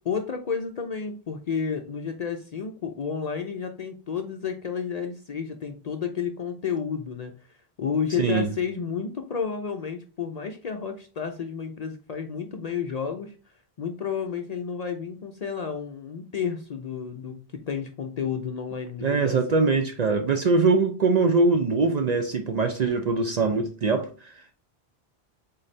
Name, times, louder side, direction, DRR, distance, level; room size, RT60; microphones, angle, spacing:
voice 1, 0.0-7.3 7.8-13.3 13.8-19.6, left 6 dB, 55° left, 0.5 m, -31 dB
voice 2, 19.0-24.1, right 4 dB, 50° right, 0.5 m, -22 dB
4.0 x 3.9 x 3.2 m
omnidirectional pair, 1.1 m